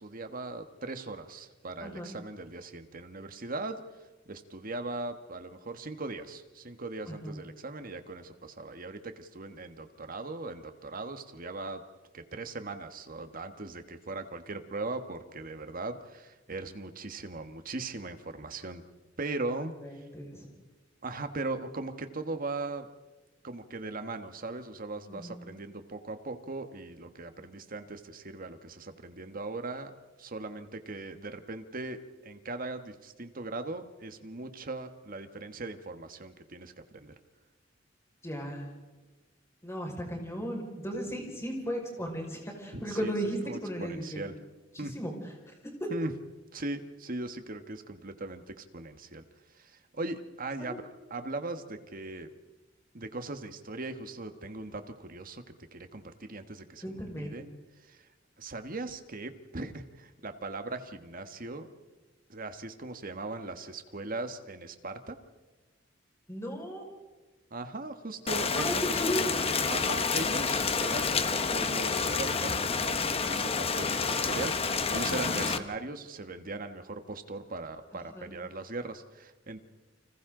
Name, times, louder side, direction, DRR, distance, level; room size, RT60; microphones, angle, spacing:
voice 1, 0.0-3.8 4.3-11.8 12.1-18.8 19.2-19.7 21.0-22.9 23.4-29.9 30.2-37.1 42.7-43.1 43.4-44.3 44.8-44.9 45.9-46.1 46.5-49.3 49.6-52.3 52.9-55.4 55.7-56.8 57.2-57.5 57.8-58.0 58.4-61.7 62.3-65.2 67.5-68.9 69.7-79.6, right 2 dB, 45° right, 8 dB, 1.5 m, -39 dB
voice 2, 7.1-7.4 19.8-20.5 25.1-25.4 38.2-38.7 39.6-44.2 44.7-45.1 45.8-45.9 50.6-50.8 56.8-57.3 66.3-66.8 68.6-69.3 75.1-75.5 78.1-78.3, equal, 15° left, 0 dB, 5.4 m, -35 dB
Rain, 68.3-75.6, left 5 dB, 30° left, 1.0 m, -29 dB
30.0 x 26.0 x 3.9 m, 1.2 s
head